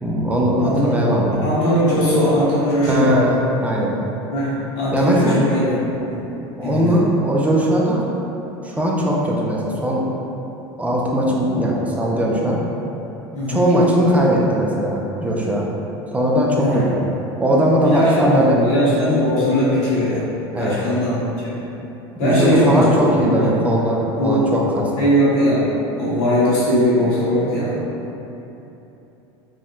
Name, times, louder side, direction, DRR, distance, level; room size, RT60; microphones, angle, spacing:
voice 1, 0.0-1.3 2.9-3.9 4.9-5.4 6.6-8.0 8.6-10.0 10.8-12.6 13.5-15.6 16.1-17.1 17.4-18.6 20.5-20.8 22.2-24.9, equal, 10° right, -3 dB, 0.5 m, -19 dB
voice 2, 0.6-0.9 1.4-3.2 4.3-6.2 6.6-7.0 13.3-13.6 16.6-17.1 17.8-20.2 20.6-21.5 22.2-22.8 23.2-23.5 24.2-24.5 25.0-25.7 26.0-27.7, equal, 60° left, -10 dB, 1.2 m, -19 dB
3.5 x 2.5 x 2.3 m, 3.0 s
hypercardioid pair, 80°, 14 cm